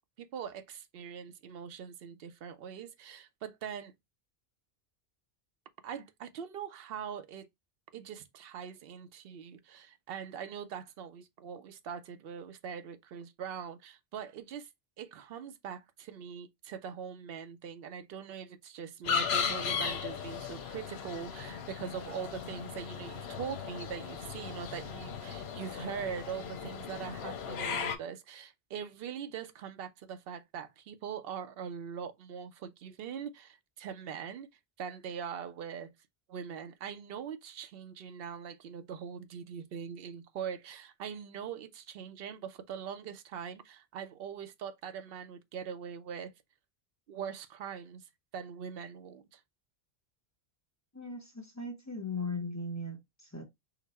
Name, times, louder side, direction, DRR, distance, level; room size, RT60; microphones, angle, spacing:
voice 1, 0.2-3.9 5.8-7.5 7.9-14.7 15.0-34.5 34.8-35.9 36.3-46.3 47.1-49.4, right 7 dB, 70° right, 0.8 m, -42 dB
sound 1, 19.0-28.0, left 7 dB, 90° left, 0.9 m, -36 dB
voice 2, 50.9-53.4, left 2 dB, 20° left, 0.7 m, -38 dB
3.9 x 2.1 x 4.1 m
omnidirectional pair, 1.0 m